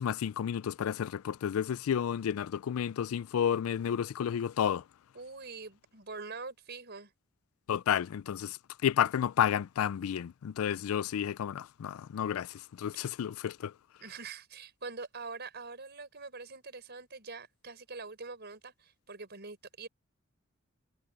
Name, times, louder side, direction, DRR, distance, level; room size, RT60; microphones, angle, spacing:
voice 1, 0.0-4.8 7.7-13.7, left 9 dB, 85° left, 0.4 m, -31 dB
voice 2, 5.1-7.1 14.0-19.9, right 4 dB, 50° right, 5.8 m, -44 dB
head